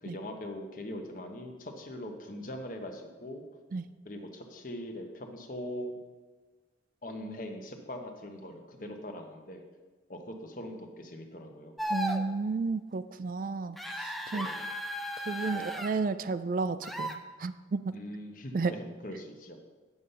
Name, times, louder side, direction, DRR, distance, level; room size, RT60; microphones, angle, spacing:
voice 1, 0.0-3.4 4.0-5.9 7.0-9.6 10.1-11.7 14.3-14.6 15.5-15.8 17.9-19.6, left 1 dB, 45° left, 4 dB, 1.1 m, -41 dB
sound 1, 11.8-12.2 13.8-15.9 16.8-17.2, equal, ahead, 0.5 m, -35 dB
voice 2, 11.9-14.5 15.3-17.8 18.5-18.7, right 4 dB, 45° right, 12 dB, 0.4 m, -32 dB
9.5 x 6.7 x 5.6 m, 1.3 s
head